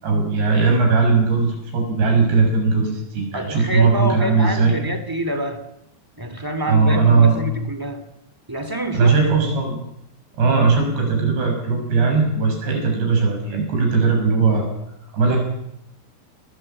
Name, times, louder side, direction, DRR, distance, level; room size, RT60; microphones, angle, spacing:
voice 1, 0.0-4.7 6.7-7.4 8.9-9.8 10.4-14.7 15.1-15.4, right 4 dB, 75° right, 2 dB, 8.3 m, -18 dB
voice 2, 3.3-5.6 6.2-8.0 8.5-9.2, equal, 15° right, 8 dB, 0.8 m, -26 dB
23.0 x 20.5 x 8.7 m, 0.80 s
omnidirectional pair, 5.0 m